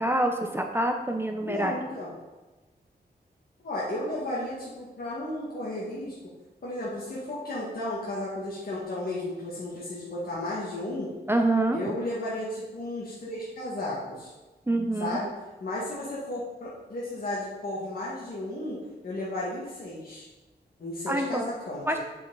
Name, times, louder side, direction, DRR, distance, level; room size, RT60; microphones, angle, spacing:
voice 1, 0.0-1.7 11.3-11.8 14.7-15.2 21.1-21.4 21.9-22.0, right 1 dB, 15° right, 4 dB, 0.6 m, -26 dB
voice 2, 1.4-2.2 3.6-6.1 6.6-11.1 11.7-14.3 15.0-15.3 15.6-20.3 20.8-22.0, left 1 dB, 55° left, -7 dB, 1.9 m, -34 dB
8.2 x 6.6 x 4.0 m, 1.1 s
wide cardioid pair, 155°, 18 cm